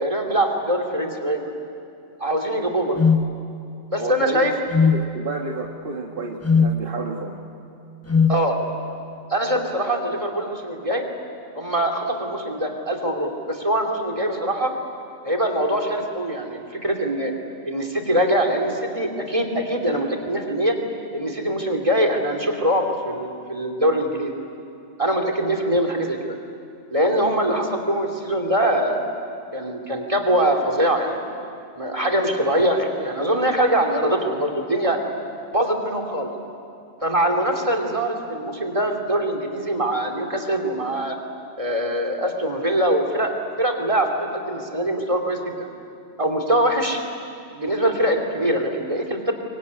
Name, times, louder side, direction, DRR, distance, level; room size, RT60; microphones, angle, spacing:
voice 1, 0.0-1.5 2.2-3.0 3.9-4.5 8.3-8.6 9.3-11.1 11.6-14.7 15.2-17.3 17.6-20.8 21.1-24.3 25.0-26.3 26.9-29.0 29.5-31.2 31.8-35.0 35.5-36.3 37.0-41.2 41.6-45.7 46.2-47.0 47.5-49.3, right 1 dB, 30° right, 4 dB, 2.9 m, -23 dB
sound 1, 3.0-3.3 4.7-5.0 6.4-6.8 8.1-8.4, left 5 dB, 20° left, 0.4 m, -17 dB
voice 2, 4.0-4.5 4.8-7.4, right 3 dB, 55° right, 1 dB, 1.7 m, -30 dB
24.0 x 23.5 x 9.7 m, 2.5 s
omnidirectional pair, 1.1 m